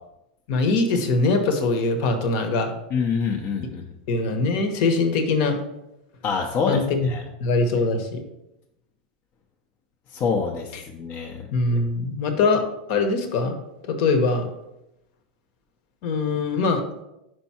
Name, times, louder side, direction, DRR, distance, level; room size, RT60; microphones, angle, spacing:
voice 1, 0.5-2.7 4.1-5.6 6.7-7.1 7.4-8.2 11.5-12.6 12.9-13.5 13.9-14.5 16.0-16.8, left 3 dB, 55° left, 6 dB, 1.0 m, -22 dB
voice 2, 2.9-3.8 6.2-7.2 10.1-11.5, left 5 dB, 35° left, 0 dB, 0.7 m, -26 dB
5.3 x 4.6 x 4.3 m, 0.87 s
supercardioid pair, 145°, 5 cm